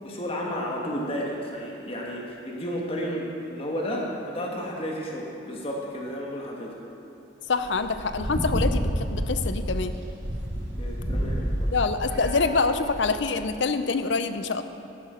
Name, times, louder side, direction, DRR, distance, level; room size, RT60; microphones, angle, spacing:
voice 1, 0.0-6.8 10.7-11.7 14.1-14.2, equal, 30° left, -2 dB, 1.4 m, -32 dB
voice 2, 7.5-9.9 11.7-14.6, left 4 dB, 70° left, 10 dB, 0.6 m, -26 dB
sound 1, 7.6-13.0, equal, 70° right, 2.1 m, -29 dB
12.5 x 11.0 x 5.0 m, 2.9 s
head